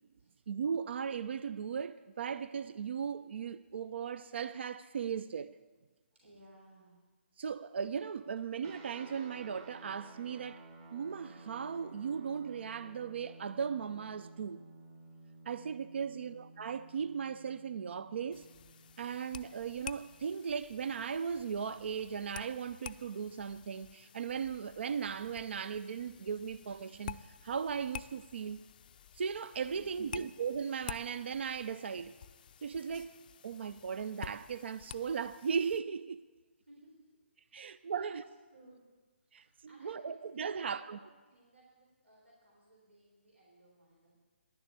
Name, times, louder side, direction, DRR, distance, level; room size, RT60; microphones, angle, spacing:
voice 1, 0.5-5.6 7.4-10.6 10.9-14.6 15.5-18.5 19.0-28.6 29.1-32.1 32.6-33.2 33.4-36.2 37.5-38.2 39.3-41.0, right 6 dB, 65° right, 0.4 m, -37 dB
voice 2, 6.2-7.0 16.0-16.3 29.7-30.3 36.7-37.1 37.5-38.8 39.4-40.2 40.5-44.2, right 1 dB, 90° right, 3.8 m, -60 dB
sound 1, 8.6-20.4, right 2 dB, 30° right, 1.3 m, -54 dB
sound 2, 18.3-35.8, left 9 dB, 45° left, 0.4 m, -50 dB
11.0 x 6.9 x 8.8 m
hypercardioid pair, 145°, 7 cm